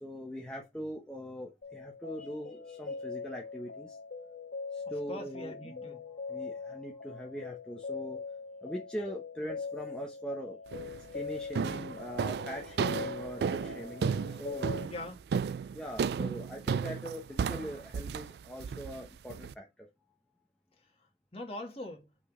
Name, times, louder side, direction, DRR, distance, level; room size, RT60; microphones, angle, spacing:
voice 1, 0.0-4.0 4.7-5.9 6.2-8.2 8.6-10.6 11.1-14.8 15.7-19.9, equal, 5° left, 1.0 m, -42 dB
sound 1, 1.6-14.9, left 5 dB, 55° left, 0.8 m, -42 dB
voice 2, 4.9-6.1 14.8-15.2 21.3-22.1, left 1 dB, 35° left, 2.1 m, -42 dB
sound 2, 10.7-11.1 11.6-19.5, right 6 dB, 60° right, 0.3 m, -34 dB
6.2 x 4.0 x 6.2 m
head